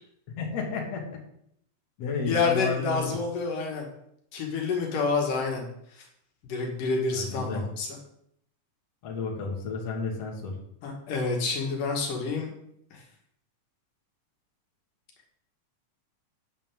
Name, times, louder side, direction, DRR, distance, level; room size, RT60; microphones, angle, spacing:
voice 1, 0.3-1.2 2.0-3.1 7.1-7.6 9.0-10.6, left 4 dB, 55° left, 0 dB, 3.0 m, -32 dB
voice 2, 2.3-3.9 4.3-5.7 5.9-6.1 6.4-7.9 10.8-12.5 12.9-13.0, left 4 dB, 85° left, 0 dB, 3.4 m, -28 dB
11.5 x 9.5 x 3.7 m, 0.72 s
omnidirectional pair, 3.7 m